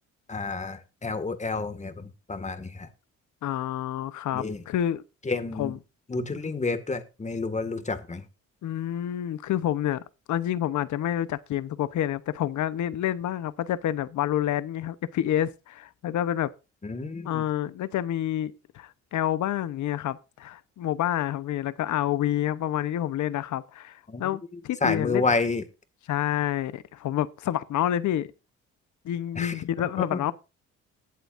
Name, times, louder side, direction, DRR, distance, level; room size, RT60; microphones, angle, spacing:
voice 1, 0.3-2.9 4.3-4.6 5.3-5.7 6.1-8.2 16.8-17.4 24.1-24.3 24.8-25.6 29.4-30.3, left 3 dB, 25° left, 1.9 m, -30 dB
voice 2, 3.4-5.0 5.5-5.8 8.6-16.5 17.2-25.3 26.1-28.3 29.0-30.3, left 11 dB, 75° left, 0.9 m, -28 dB
20.0 x 8.0 x 2.6 m
cardioid pair, 90°, 30 cm